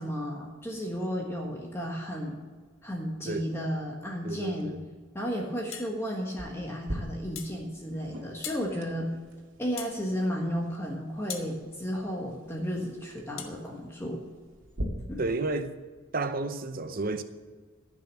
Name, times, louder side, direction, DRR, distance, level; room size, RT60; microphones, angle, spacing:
voice 1, 0.0-2.4 2.8-4.7 5.1-9.1 9.6-14.2 15.1-15.2, equal, 10° left, 1.4 m, -33 dB
voice 2, 4.2-4.8 15.2-15.8 16.1-17.2, right 3 dB, 45° right, 0.7 m, -31 dB
sound 1, 5.7-5.9 7.4-7.6 8.4-8.7 9.8-10.0 11.3-11.5 13.4-13.6, left 8 dB, 80° left, 1.4 m, -39 dB
sound 2, 6.4-14.8, right 1 dB, 70° right, 2.0 m, -44 dB
14.5 x 6.2 x 7.5 m
head